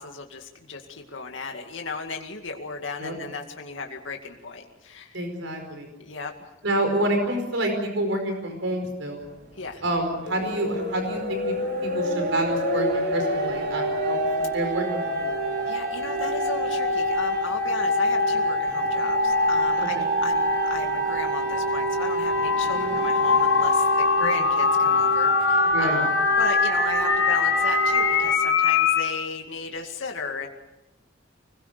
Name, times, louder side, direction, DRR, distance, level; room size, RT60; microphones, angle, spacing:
voice 1, 0.0-5.2 6.0-6.3 9.6-9.8 15.7-20.0 20.2-30.5, left 4 dB, 85° left, 3 dB, 2.3 m, -35 dB
voice 2, 5.1-5.9 6.6-9.3 9.8-11.5 11.8-15.4 19.8-20.1 22.7-23.0 24.2-24.4 25.7-26.0, right 1 dB, 80° right, 5 dB, 5.1 m, -28 dB
sound 1, 9.4-9.5 9.8-28.3, right 3 dB, 55° right, 3.2 m, -29 dB
sound 2, 10.3-29.2, left 4 dB, 65° left, 2.5 m, -25 dB
26.0 x 21.0 x 6.8 m, 0.90 s
head